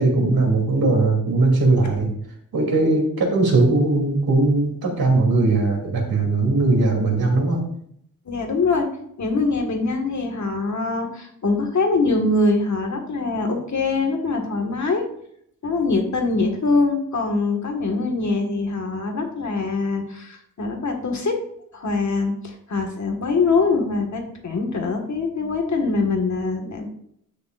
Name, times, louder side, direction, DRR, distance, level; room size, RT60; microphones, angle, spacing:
voice 1, 0.0-2.1 2.5-7.6, right 2 dB, 80° right, 0 dB, 3.2 m, -19 dB
voice 2, 8.2-8.9 9.2-15.0 15.6-21.3 21.7-26.9, left 3 dB, 55° left, 3 dB, 1.8 m, -23 dB
15.0 x 6.8 x 2.5 m, 0.68 s
wide cardioid pair, 120°, 35 cm